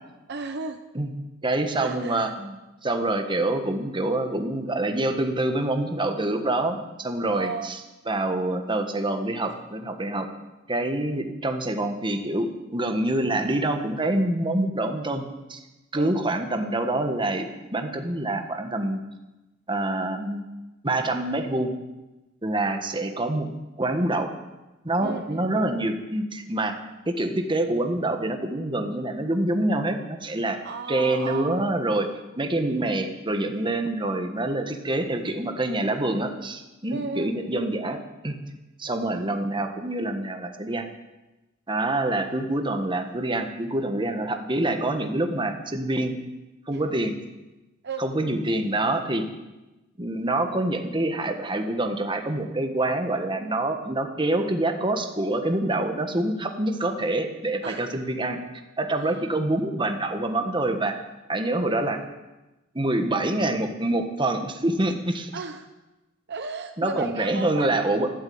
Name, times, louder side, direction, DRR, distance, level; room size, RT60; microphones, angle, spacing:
voice 1, 0.3-0.8 1.7-2.3 7.3-7.7 15.9-16.1 25.0-25.5 30.6-31.5 36.9-37.3 46.7-46.8 47.8-48.0 49.1-49.3 57.6-57.9 59.0-59.1 65.3-65.7 66.3-67.7, right 4 dB, 55° right, 7 dB, 0.9 m, -34 dB
voice 2, 1.4-2.5 2.8-7.8 8.1-10.3 10.7-15.2 15.5-15.6 15.9-17.5 17.7-19.0 19.7-20.4 20.8-21.7 22.4-23.5 23.8-24.3 24.8-26.8 27.0-30.6 30.9-32.1 32.3-38.3 38.8-40.9 41.7-46.1 46.7-47.1 48.0-49.2 50.0-58.4 58.8-61.0 61.3-62.0 62.7-65.3 66.8-68.1, right 1 dB, 25° right, 5 dB, 1.5 m, -26 dB
13.0 x 12.0 x 8.7 m, 1.1 s
head